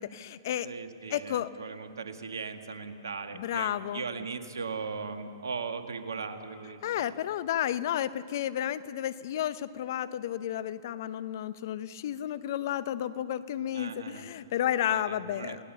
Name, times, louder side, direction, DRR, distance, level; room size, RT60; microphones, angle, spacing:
voice 1, 0.0-0.7 1.1-1.5 3.3-4.0 6.8-15.6, left 11 dB, 55° left, 15 dB, 0.9 m, -32 dB
voice 2, 0.6-7.2 13.7-14.3 14.9-15.7, right 5 dB, 85° right, 7 dB, 1.9 m, -38 dB
28.5 x 18.0 x 6.9 m, 2.5 s
hypercardioid pair, 125°, 2 cm